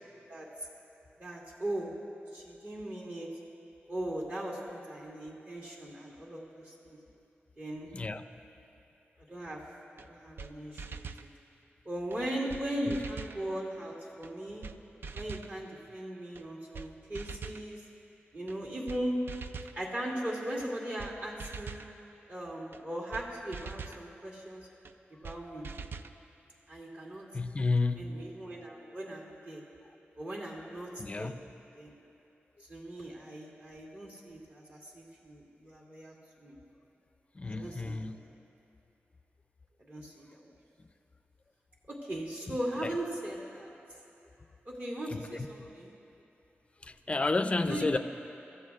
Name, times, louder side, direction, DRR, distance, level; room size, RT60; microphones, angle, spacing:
voice 1, 0.3-0.7 1.2-1.9 2.3-3.3 3.9-7.0 7.6-7.9 9.3-9.6 9.9-11.3 11.8-14.7 15.1-17.8 18.3-19.2 19.7-21.8 22.3-24.7 25.2-25.7 26.7-27.3 28.0-29.6 30.1-31.3 31.8-31.9 32.6-36.6 37.4-38.2 39.8-40.6 41.9-43.7 44.6-45.9 47.7-48.0, right 1 dB, 40° right, -2 dB, 2.4 m, -38 dB
sound 1, 10.0-10.1 10.4-10.5 10.8-11.3 12.1-12.2 12.5-12.6 12.9-13.4 14.2-14.3 14.6-14.8 15.0-15.5 16.3-16.4 16.7-16.9 17.1-17.6 18.5-18.6 18.9-19.0 19.3-19.8 20.6-20.7 21.0-21.1 21.4-21.9 22.7-22.8 23.1-23.3 23.5-24.0 24.8-24.9 25.2-25.4 25.6-26.1, right 5 dB, 60° right, 0.4 m, -42 dB
voice 2, 27.3-28.3 31.0-31.4 37.4-38.2 42.5-42.6 42.8-42.9 45.1-45.3 45.6-45.7 46.8-48.0, left 3 dB, 30° left, 10 dB, 0.4 m, -31 dB
24.0 x 14.0 x 2.4 m, 2.9 s
wide cardioid pair, 145°, 4 cm